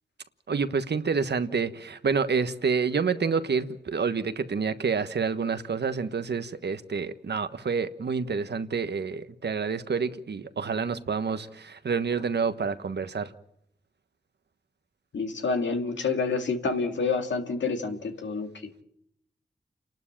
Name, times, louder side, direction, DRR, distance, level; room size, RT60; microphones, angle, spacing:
voice 1, 0.5-13.3, right 5 dB, 65° right, 1.3 m, -28 dB
voice 2, 15.1-18.5, left 4 dB, 90° left, 2.3 m, -28 dB
29.5 x 12.0 x 8.8 m
cardioid pair, 60°, 19 cm